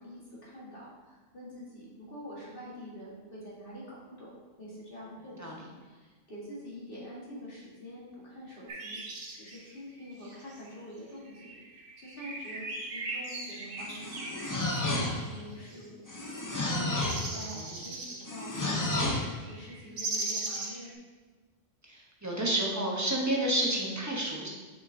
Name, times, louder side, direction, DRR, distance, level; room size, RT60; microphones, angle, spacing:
voice 1, 0.0-4.3 4.6-16.4 16.7-20.9, equal, 45° left, -7 dB, 1.8 m, -46 dB
sound 1, 8.7-10.7 11.2-15.9 16.9-18.3 18.8-20.9, right 2 dB, 50° right, 0.9 m, -39 dB
sound 2, 13.8-15.4 16.1-17.3 18.3-19.3, left 2 dB, 20° left, 0.5 m, -31 dB
voice 2, 17.5-17.8 21.9-24.5, right 1 dB, 15° right, -3 dB, 0.9 m, -30 dB
7.1 x 4.9 x 2.7 m, 1.3 s
omnidirectional pair, 1.3 m